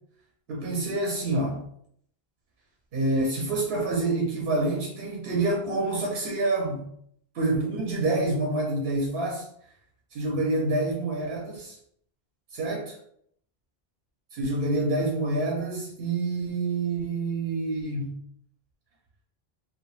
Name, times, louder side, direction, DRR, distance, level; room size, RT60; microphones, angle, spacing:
voice 1, 0.5-1.6 2.9-6.9 7.3-9.5 10.1-11.8 12.5-13.0 14.3-18.2, right 2 dB, 75° right, 0.8 m, -27 dB
2.2 x 2.2 x 3.0 m
omnidirectional pair, 1.0 m